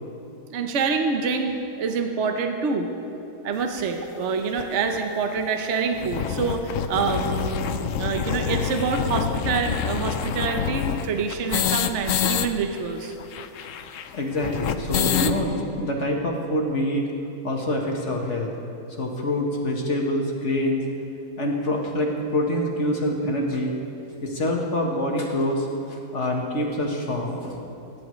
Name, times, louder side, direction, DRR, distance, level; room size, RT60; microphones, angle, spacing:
voice 1, 0.5-2.9 3.4-13.1, right 5 dB, 55° right, 5 dB, 1.0 m, -26 dB
sound 1, 3.8-3.9 4.6-4.7 4.9-5.0 5.3-5.4 5.8-12.5 12.7-12.8 13.0-15.4, left 8 dB, 65° left, 0.8 m, -27 dB
voice 2, 14.1-17.1 17.4-18.5 19.0-20.8 21.4-23.7 24.2-27.6, left 1 dB, 50° left, 0 dB, 1.6 m, -25 dB
25.5 x 10.5 x 3.1 m, 2.8 s
omnidirectional pair, 1.7 m